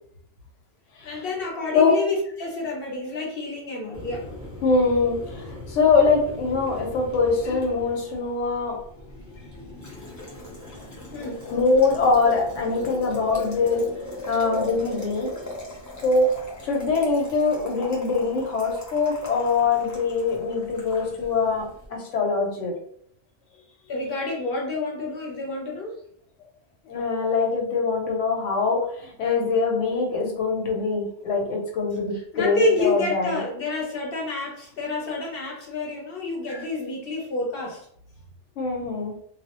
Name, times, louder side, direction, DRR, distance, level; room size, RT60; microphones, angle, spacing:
voice 1, 1.0-4.3 10.2-10.4 11.1-11.4 23.8-25.9 32.1-37.9, left 2 dB, 60° left, -2 dB, 0.8 m, -29 dB
Boiling, 3.9-21.9, left 2 dB, 25° left, 0.4 m, -38 dB
voice 2, 4.6-8.8 11.5-15.5 16.0-16.3 16.6-22.7 26.9-33.4 36.5-36.6 38.6-39.1, left 4 dB, 90° left, 0 dB, 1.0 m, -23 dB
2.2 x 2.0 x 2.8 m, 0.66 s
omnidirectional pair, 1.2 m